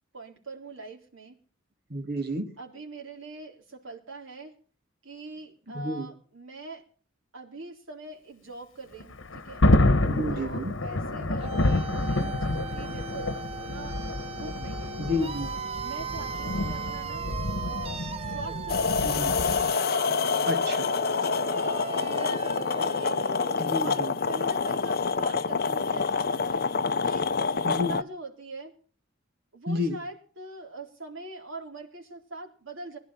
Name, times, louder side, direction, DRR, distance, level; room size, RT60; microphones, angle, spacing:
voice 1, 0.1-1.4 2.6-4.5 5.0-6.8 7.3-9.7 10.3-14.0 14.3-15.0 15.8-17.3 17.6-19.3 21.1-23.3 23.8-26.7 27.0-28.7 29.5-33.0, right 2 dB, 85° right, 1 dB, 3.9 m, -43 dB
voice 2, 1.9-2.5 5.7-6.1 10.0-10.7 15.0-15.5 19.0-19.4 20.4-20.9 23.6-24.1 27.6-28.0 29.7-30.0, left 1 dB, 50° right, 5 dB, 2.4 m, -30 dB
Thunder, 9.0-19.7, left 2 dB, 70° left, 1.3 m, -28 dB
sound 1, 11.4-24.2, right 5 dB, 30° right, 0.7 m, -38 dB
sound 2, 18.7-28.0, left 5 dB, 50° left, 0.7 m, -27 dB
20.0 x 11.0 x 5.8 m, 0.42 s
head